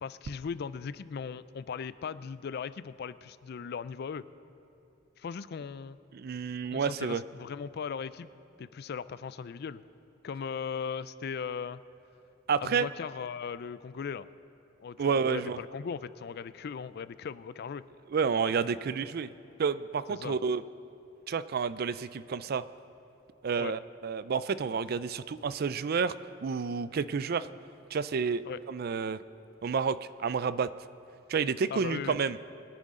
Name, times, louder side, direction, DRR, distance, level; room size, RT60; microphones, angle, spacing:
voice 1, 0.0-4.2 5.2-6.0 6.7-8.3 8.6-9.8 10.2-11.8 12.6-14.3 14.8-17.8 20.1-20.4 23.6-23.8 28.4-28.6 31.7-32.2, left 6 dB, 55° left, 16 dB, 0.4 m, -38 dB
voice 2, 6.1-7.2 12.5-12.9 15.0-15.6 18.1-19.3 19.6-20.6 21.3-22.6 23.4-26.1 26.4-27.5 27.9-29.2 29.6-30.7 31.3-32.4, right 6 dB, 55° right, 15 dB, 0.4 m, -30 dB
23.0 x 10.5 x 3.7 m, 3.0 s
head